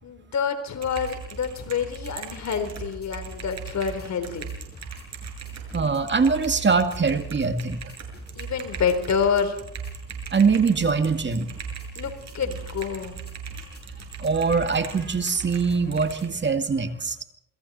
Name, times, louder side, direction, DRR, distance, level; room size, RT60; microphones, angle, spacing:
voice 1, 0.0-4.5 8.4-9.6 12.0-13.2, left 6 dB, 55° left, 8 dB, 4.0 m, -27 dB
Typing, 0.7-16.3, right 6 dB, 55° right, 7.4 m, -39 dB
sound 1, 0.8-16.4, left 2 dB, 30° left, 7.3 m, -46 dB
voice 2, 5.7-7.8 10.3-11.5 14.2-17.2, right 5 dB, 35° right, 7 dB, 2.3 m, -23 dB
29.0 x 21.5 x 4.3 m, 0.76 s
supercardioid pair, 80°, 32 cm